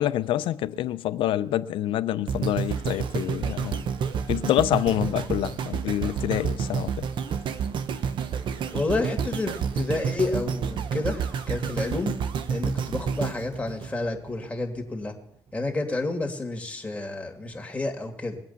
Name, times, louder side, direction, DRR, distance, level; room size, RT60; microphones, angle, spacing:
voice 1, 0.0-3.8 4.3-6.9, left 13 dB, 80° left, 0.5 m, -26 dB
sound 1, 2.3-14.5 15.0-15.1, right 7 dB, 70° right, 1.0 m, -29 dB
voice 2, 8.7-12.2 12.5-15.1 15.5-18.4, left 2 dB, 15° left, 2.6 m, -30 dB
21.0 x 8.4 x 5.8 m
cardioid pair, 85°, 9 cm